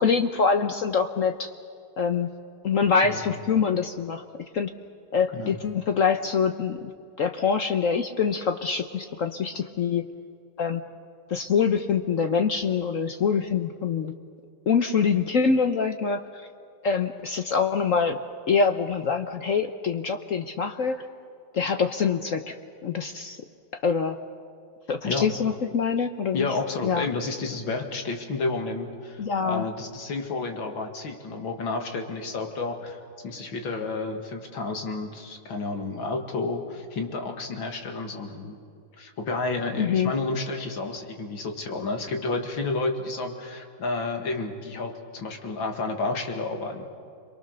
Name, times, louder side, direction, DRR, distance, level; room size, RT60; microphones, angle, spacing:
voice 1, 0.0-1.5 2.0-2.3 2.6-4.2 4.5-4.7 5.1-6.9 7.2-10.1 10.6-10.8 11.3-14.1 14.7-16.5 16.8-18.2 18.5-21.1 21.5-22.6 22.8-23.4 23.8-24.2 24.9-26.5 26.8-27.1 29.2-29.6 39.8-40.1, left 6 dB, 55° left, 7 dB, 1.0 m, -25 dB
voice 2, 3.0-3.4 5.3-5.6 25.0-25.3 26.3-33.0 33.2-38.6 39.0-47.0, left 3 dB, 85° left, 4 dB, 2.8 m, -31 dB
29.5 x 23.0 x 6.7 m, 2.4 s
omnidirectional pair, 2.1 m